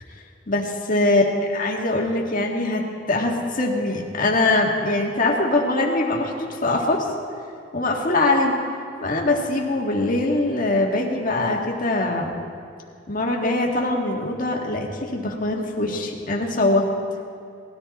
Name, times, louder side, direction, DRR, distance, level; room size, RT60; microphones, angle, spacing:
voice 1, 0.5-7.1 7.7-8.6 9.0-12.3 13.1-16.9, left 2 dB, 40° left, 0 dB, 1.8 m, -22 dB
19.5 x 13.0 x 4.2 m, 2.5 s
head